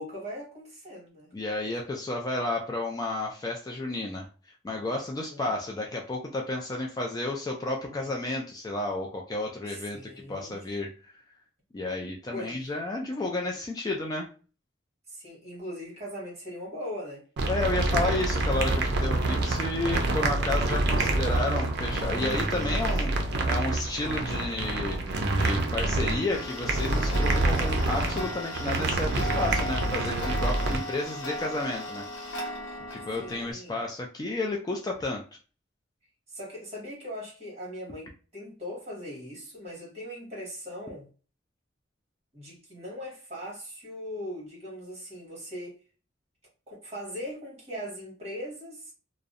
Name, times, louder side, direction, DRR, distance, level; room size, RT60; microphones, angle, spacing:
voice 1, 0.0-1.3 5.2-5.4 7.8-8.1 9.6-10.6 12.3-12.6 15.1-17.2 33.2-33.8 36.3-41.1 42.3-45.8 46.7-48.9, equal, 35° right, 1.3 m, -40 dB
voice 2, 1.3-4.3 4.6-10.0 10.3-10.9 11.7-14.3 17.5-25.0 25.4-32.1 32.9-35.2, left 2 dB, 20° left, 0.3 m, -31 dB
sound 1, 17.4-30.8, right 2 dB, 60° right, 0.5 m, -27 dB
Tick-tock, 26.3-33.5, equal, 75° left, 0.7 m, -37 dB
2.6 x 2.0 x 2.4 m
head